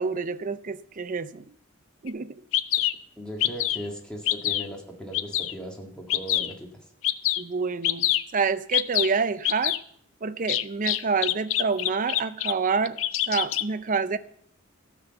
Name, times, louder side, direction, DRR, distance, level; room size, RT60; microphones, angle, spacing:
voice 1, 0.0-1.5 2.0-2.4 7.4-8.1 8.3-9.8 10.2-13.0 13.3-14.2, right 5 dB, 40° right, 0.5 m, -27 dB
Bird vocalization bird call bird song, 2.1-2.2 2.5-2.9 3.4-3.9 4.3-4.7 5.1-5.5 6.1-6.5 7.0-7.4 7.8-8.2 8.7-9.1 9.4-9.8 10.5-12.5 12.9-13.6, left 13 dB, 65° left, 0.5 m, -25 dB
voice 2, 3.2-6.8, equal, 5° left, 1.9 m, -38 dB
13.0 x 6.1 x 6.7 m
head